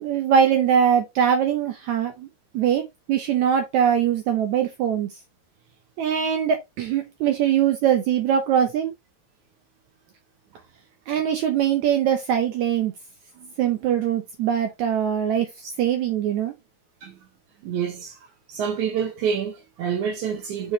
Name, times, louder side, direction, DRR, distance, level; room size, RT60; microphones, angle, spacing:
voice 1, 0.0-2.3 2.5-2.8 3.1-5.1 6.0-8.9 11.1-12.9 13.6-15.5 15.8-16.5, right 8 dB, 85° right, 1.6 m, -22 dB
voice 2, 17.6-18.2 18.5-20.7, right 7 dB, 70° right, 1.9 m, -27 dB
7.0 x 5.0 x 2.7 m
omnidirectional pair, 4.5 m